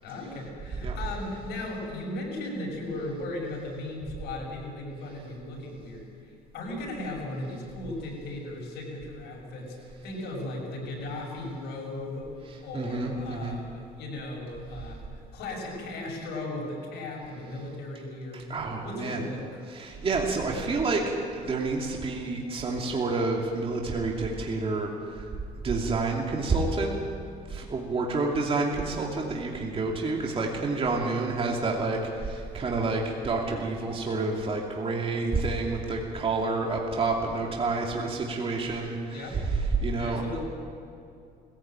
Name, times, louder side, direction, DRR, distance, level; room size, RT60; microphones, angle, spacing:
voice 1, 0.0-6.1 6.5-9.8 10.0-12.3 12.6-18.4 18.8-19.6 28.3-28.4 39.1-39.4 40.0-40.4, left 2 dB, 80° left, -1 dB, 6.9 m, -37 dB
voice 2, 12.7-13.6 18.3-19.2 19.7-25.3 25.6-27.0 27.5-40.2, right 3 dB, 35° right, -1 dB, 2.8 m, -29 dB
21.0 x 16.0 x 9.0 m, 2.4 s
cardioid pair, 110°, 17 cm